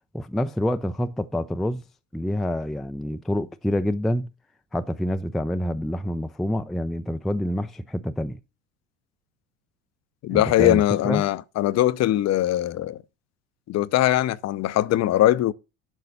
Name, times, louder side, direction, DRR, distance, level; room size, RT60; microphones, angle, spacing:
voice 1, 0.1-1.8 2.1-4.3 4.7-8.4 10.3-11.2, left 1 dB, ahead, 0.4 m, -27 dB
voice 2, 10.2-13.0 13.7-15.5, left 14 dB, 40° left, 0.7 m, -21 dB
11.0 x 4.0 x 7.0 m
hypercardioid pair, 75°, 40 cm